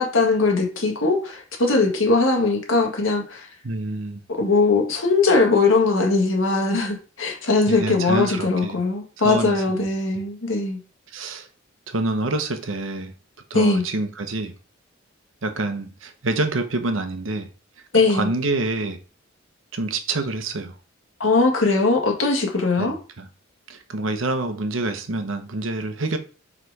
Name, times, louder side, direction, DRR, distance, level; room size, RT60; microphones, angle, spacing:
voice 1, 0.0-3.5 4.3-10.8 13.5-13.8 17.9-18.3 21.2-23.0, left 3 dB, 85° left, 1.8 m, -20 dB
voice 2, 3.6-4.2 7.7-8.8 9.2-9.9 11.1-11.5 11.9-13.1 13.5-14.5 15.4-17.5 18.1-19.0 19.7-20.7 22.8-23.3 23.7-26.2, right 2 dB, 80° right, 1.0 m, -27 dB
4.9 x 4.9 x 4.7 m
head